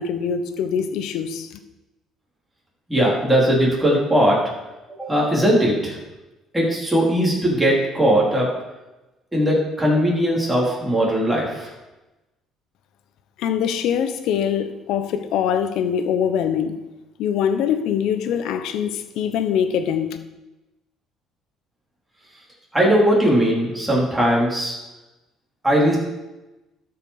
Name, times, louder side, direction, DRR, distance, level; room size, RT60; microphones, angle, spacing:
voice 1, 0.0-1.5 13.4-16.7 17.2-20.2, left 8 dB, 75° left, 9 dB, 1.0 m, -23 dB
voice 2, 2.9-4.4 5.0-6.0 6.5-8.5 9.3-11.7 22.7-24.7 25.6-26.0, equal, 10° right, -5 dB, 4.0 m, -19 dB
12.5 x 6.0 x 5.1 m, 1.0 s
cardioid pair, 105°, 0 cm